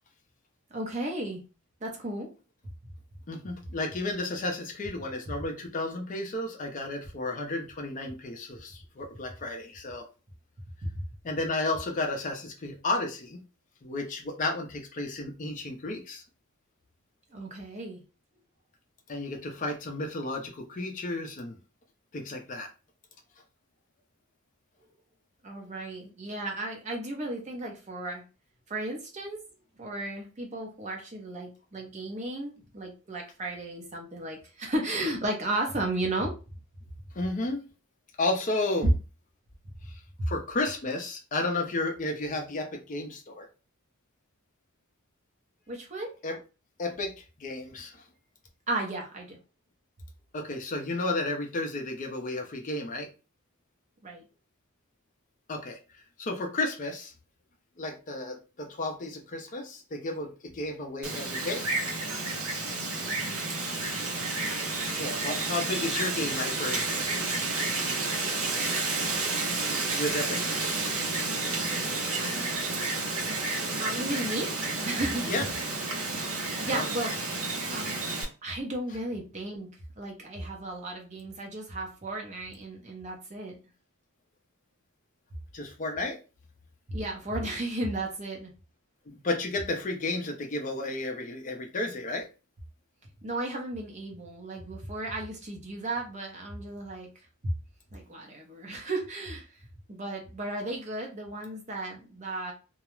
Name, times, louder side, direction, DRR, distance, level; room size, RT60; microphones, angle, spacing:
voice 1, 0.7-1.4 1.8-2.3 10.9-11.0 17.3-18.0 25.4-28.2 28.7-29.4 29.8-36.3 39.6-39.7 45.7-46.1 48.7-49.4 54.0-54.2 63.1-63.4 73.8-74.6 74.8-75.2 76.1-77.2 77.7-78.0 78.4-79.7 80.0-83.6 86.9-88.5 93.2-97.1 97.9-99.5 99.9-102.5, right 2 dB, 35° right, 1 dB, 0.7 m, -34 dB
voice 2, 3.3-10.0 11.2-13.4 13.8-16.2 19.1-21.5 22.1-22.7 37.1-37.6 38.2-38.9 39.8-39.9 40.3-43.5 46.2-46.4 46.8-48.0 50.3-53.1 55.5-57.1 57.8-61.7 64.9-66.9 69.9-70.7 75.3-75.5 76.7-76.9 85.5-86.2 89.1-92.3, left 2 dB, 35° left, 3 dB, 0.5 m, -32 dB
Wind, 61.0-78.2, right 3 dB, 70° right, 0.7 m, -31 dB
2.3 x 2.0 x 3.0 m, 0.32 s
head